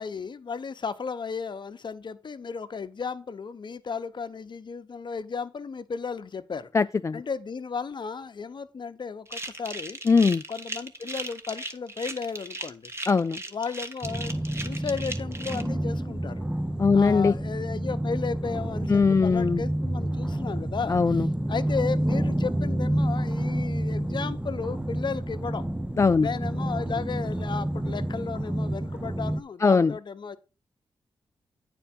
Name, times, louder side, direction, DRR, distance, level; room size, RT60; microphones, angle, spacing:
voice 1, 0.0-6.7 7.1-10.0 10.5-12.9 13.5-16.4 16.9-21.2 21.5-25.7 26.2-30.4, left 5 dB, 55° left, 0.9 m, -34 dB
voice 2, 6.7-7.2 10.1-10.4 13.1-13.4 16.8-17.3 18.9-19.6 20.9-21.3 26.0-26.3 29.6-29.9, left 4 dB, 30° left, 0.3 m, -20 dB
sound 1, 9.3-15.6, right 2 dB, 25° right, 1.4 m, -37 dB
sound 2, 14.0-29.4, right 1 dB, 10° right, 0.7 m, -29 dB
9.1 x 4.6 x 5.9 m
cardioid pair, 60°, 10 cm